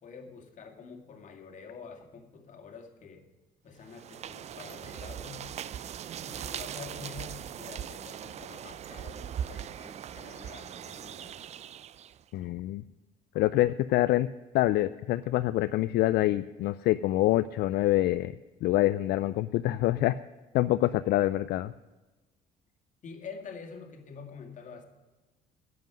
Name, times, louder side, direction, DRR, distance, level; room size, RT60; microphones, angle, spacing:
voice 1, 0.0-3.2 3.6-5.5 6.2-11.5 23.0-24.9, left 5 dB, 45° left, 3 dB, 2.2 m, -47 dB
sound 1, 3.8-12.2, right 9 dB, 40° right, 0.4 m, -40 dB
voice 2, 12.3-12.8 13.3-14.3 14.5-18.3 18.6-20.2 20.5-21.7, left 15 dB, 75° left, 13 dB, 0.4 m, -26 dB
10.5 x 7.9 x 9.3 m, 1.2 s
cardioid pair, 110°, 17 cm